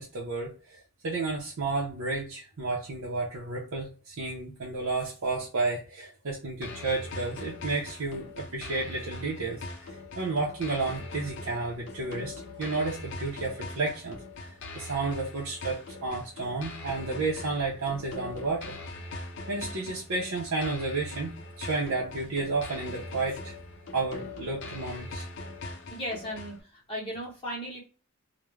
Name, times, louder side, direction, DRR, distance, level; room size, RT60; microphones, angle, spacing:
voice 1, 0.0-18.8 19.5-23.5 23.9-25.2, right 3 dB, 70° right, -4 dB, 0.6 m, -32 dB
sound 1, 6.6-26.6, left 2 dB, 55° left, 0.5 m, -41 dB
voice 2, 25.9-27.8, equal, 25° left, -3 dB, 0.8 m, -36 dB
2.3 x 2.1 x 3.0 m, 0.36 s
head